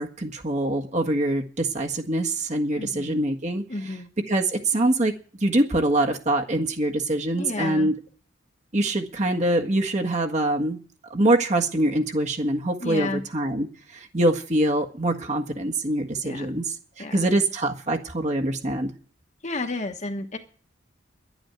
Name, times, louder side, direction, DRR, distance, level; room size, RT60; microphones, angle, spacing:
voice 1, 0.0-3.6 4.3-5.1 5.4-7.9 8.7-10.8 11.1-13.7 13.9-19.0, right 1 dB, 40° right, 3 dB, 1.6 m, -24 dB
voice 2, 2.8-3.2 3.7-4.1 7.4-7.9 12.8-13.2 16.2-16.5 17.0-17.2 19.4-20.4, left 2 dB, 40° left, 6 dB, 1.4 m, -31 dB
11.5 x 9.0 x 9.3 m, 0.42 s
head